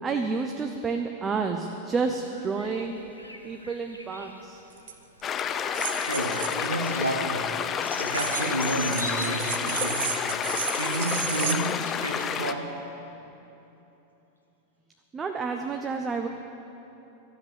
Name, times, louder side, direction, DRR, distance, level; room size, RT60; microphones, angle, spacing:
voice 1, 0.0-3.0 3.4-4.6 15.1-16.3, right 4 dB, 20° right, 4 dB, 0.7 m, -30 dB
sound 1, 2.0-10.6, equal, 90° left, 0.9 m, -42 dB
sound 2, 4.8-4.9 5.7-6.7 8.1-11.5, right 8 dB, 55° right, 0.9 m, -33 dB
sound 3, 5.2-12.5, left 7 dB, 25° left, 0.5 m, -30 dB
voice 2, 6.0-10.2 10.8-12.8, right 1 dB, 85° right, 0 dB, 1.0 m, -31 dB
12.5 x 7.8 x 8.8 m, 3.0 s
figure-of-eight pair, 90°, 0 cm